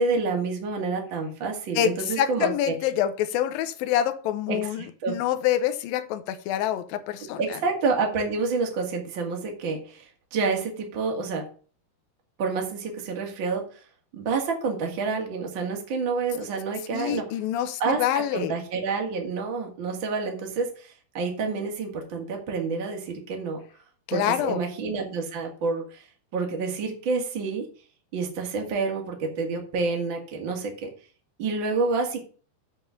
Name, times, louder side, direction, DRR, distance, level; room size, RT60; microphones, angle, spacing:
voice 1, 0.0-2.7 4.5-5.2 7.4-10.0 10.3-11.4 12.4-13.7 14.1-17.3 17.8-23.6 24.1-26.0 26.3-27.7 28.1-30.9 31.4-32.2, right 4 dB, 35° right, 2 dB, 2.2 m, -28 dB
voice 2, 1.8-7.6 16.9-18.5 24.1-24.6, left 11 dB, 75° left, 10 dB, 2.2 m, -26 dB
7.9 x 5.4 x 6.9 m, 0.39 s
omnidirectional pair, 4.9 m